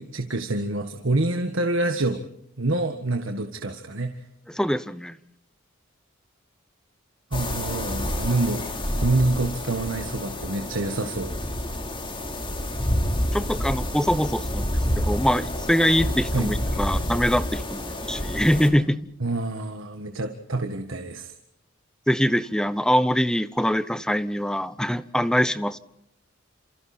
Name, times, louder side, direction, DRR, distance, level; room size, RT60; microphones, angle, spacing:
voice 1, 0.0-2.3 2.6-4.2 7.3-8.7 9.0-11.4 16.3-16.5 19.2-21.3, right 2 dB, 70° right, 6 dB, 1.7 m, -26 dB
voice 2, 4.5-5.2 13.3-19.1 22.1-25.8, equal, 5° left, 14 dB, 0.8 m, -23 dB
sound 1, 7.3-18.7, left 1 dB, 25° left, 3.8 m, -28 dB
29.5 x 28.0 x 4.4 m, 0.79 s
head